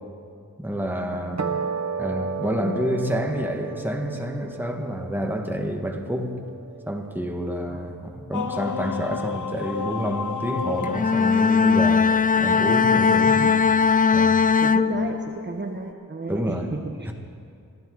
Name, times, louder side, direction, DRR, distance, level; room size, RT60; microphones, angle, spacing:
voice 1, 0.6-1.4 2.0-6.4 6.9-12.1 12.4-13.4 14.1-14.4 16.3-16.7, equal, 5° right, 3 dB, 1.7 m, -28 dB
voice 2, 1.1-1.7 2.6-2.9 7.7-7.9 13.2-13.5 14.6-17.1, right 3 dB, 30° right, 2 dB, 1.2 m, -33 dB
sound 1, 1.4-7.9, right 5 dB, 55° right, 1.4 m, -34 dB
sound 2, 8.3-12.6, left 6 dB, 60° left, 0.8 m, -32 dB
Bowed string instrument, 10.8-15.5, left 5 dB, 25° left, 0.4 m, -19 dB
25.0 x 14.5 x 4.0 m, 2.4 s
wide cardioid pair, 75°, 33 cm